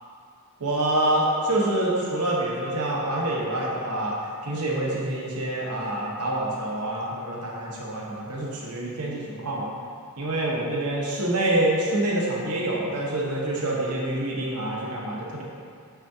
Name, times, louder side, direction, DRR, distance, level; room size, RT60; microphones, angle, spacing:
voice 1, 0.6-4.2 4.4-9.7 10.2-15.4, right 1 dB, 85° right, -3 dB, 1.0 m, -26 dB
6.0 x 5.7 x 2.7 m, 2.4 s
head